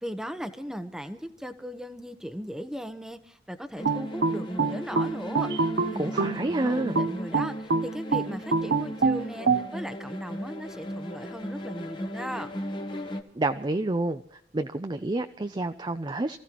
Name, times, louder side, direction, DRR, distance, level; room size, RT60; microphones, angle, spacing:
voice 1, 0.0-12.5, equal, 5° right, 9 dB, 1.0 m, -37 dB
sound 1, 3.8-13.2, equal, 25° left, 1.3 m, -37 dB
sound 2, 3.8-6.4 7.0-9.7, right 4 dB, 60° right, 0.7 m, -25 dB
voice 2, 6.0-7.0 13.4-14.2 14.5-16.4, right 2 dB, 25° right, 9 dB, 0.5 m, -28 dB
28.0 x 15.0 x 3.0 m, 0.70 s
head